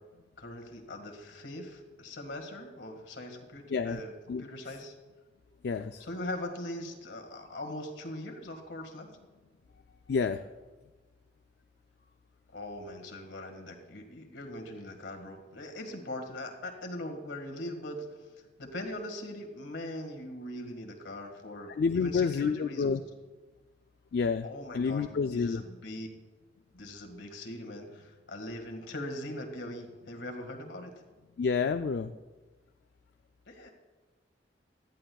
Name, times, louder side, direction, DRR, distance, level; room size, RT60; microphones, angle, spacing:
voice 1, 0.4-4.1 4.4-4.9 6.0-9.1 12.5-18.1 18.6-23.0 24.4-26.1 26.7-30.9 33.5-33.7, left 1 dB, 80° left, 3 dB, 1.9 m, -41 dB
voice 2, 3.7-4.0 4.3-4.4 5.6-6.0 10.1-10.4 21.7-23.0 24.1-24.5 24.7-25.6 31.4-32.1, left 5 dB, 60° left, 8 dB, 0.4 m, -29 dB
17.5 x 13.5 x 2.3 m, 1.3 s
head